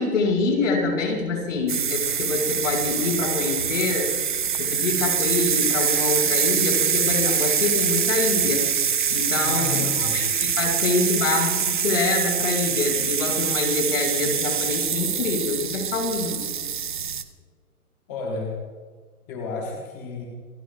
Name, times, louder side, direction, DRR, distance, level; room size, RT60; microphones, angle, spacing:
voice 1, 0.0-4.1 4.5-8.6 9.1-16.4, left 3 dB, 55° left, 1 dB, 6.6 m, -25 dB
sound 1, 1.7-17.2, right 7 dB, 35° right, 0.7 m, -24 dB
voice 2, 9.4-10.4 15.8-16.1 18.1-18.5 19.3-20.2, left 3 dB, 10° left, -2 dB, 1.0 m, -32 dB
27.5 x 18.0 x 2.6 m, 1.5 s
hypercardioid pair, 170°, 45 cm